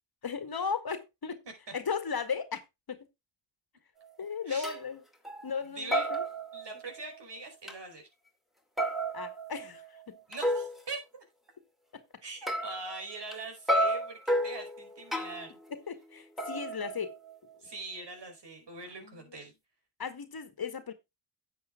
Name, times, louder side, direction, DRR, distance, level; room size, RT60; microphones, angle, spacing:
voice 1, 0.2-1.4 1.7-2.6 2.9-3.1 4.2-5.0 5.4-6.2 9.1-10.2 11.9-12.0 15.7-17.1 19.0-19.1 20.0-20.9, left 6 dB, 50° left, 1.8 m, -36 dB
sound 1, 4.0-4.1 4.6-4.8 5.2-5.6 5.9-7.2 7.7-7.8 8.8-10.8 12.5-13.4 13.7-15.6 16.4-17.5, right 1 dB, ahead, 2.4 m, -32 dB
voice 2, 5.7-6.1 6.5-8.1 10.3-11.2 12.2-15.6 17.6-19.5, right 3 dB, 60° right, 5.0 m, -42 dB
10.0 x 7.6 x 3.7 m
cardioid pair, 65°, 47 cm